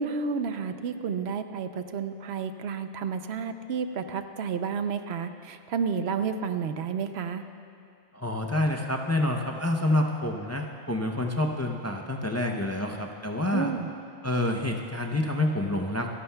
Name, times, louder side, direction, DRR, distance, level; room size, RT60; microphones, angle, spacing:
voice 1, 0.0-7.4 13.5-13.9, right 6 dB, 80° right, 9 dB, 0.9 m, -31 dB
voice 2, 8.1-13.7 14.2-16.1, left 1 dB, 20° left, 2 dB, 0.5 m, -28 dB
27.5 x 11.0 x 2.3 m, 2.4 s
omnidirectional pair, 1.1 m